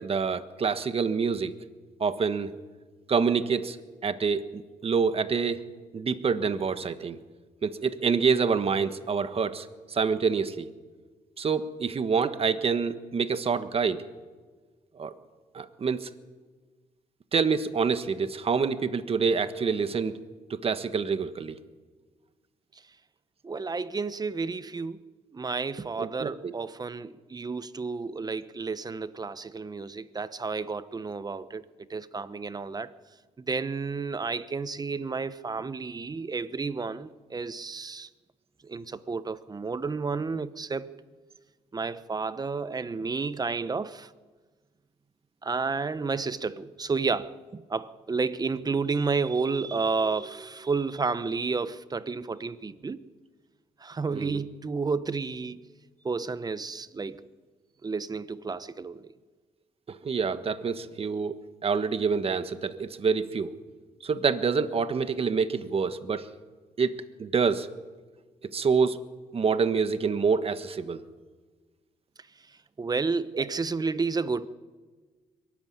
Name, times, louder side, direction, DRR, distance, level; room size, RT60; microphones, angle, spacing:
voice 1, 0.0-1.5 2.0-2.5 3.1-3.8 4.0-5.6 5.9-7.2 7.6-10.7 11.4-14.0 15.0-15.1 15.5-16.1 17.3-20.1 20.5-21.5 26.0-26.5 54.1-54.4 59.9-61.4 61.6-63.5 64.0-66.3 66.8-66.9 67.2-67.7 68.5-69.0 69.3-71.0 73.3-73.4, right 5 dB, 45° right, 1.4 m, -27 dB
voice 2, 23.4-25.0 25.3-31.6 31.9-32.9 33.4-38.1 38.6-40.9 41.7-44.1 45.4-53.0 53.8-55.7 56.0-57.2 57.8-59.1 72.8-74.5, right 4 dB, 30° right, 1.0 m, -31 dB
22.5 x 13.5 x 9.4 m
cardioid pair, 80°, 14 cm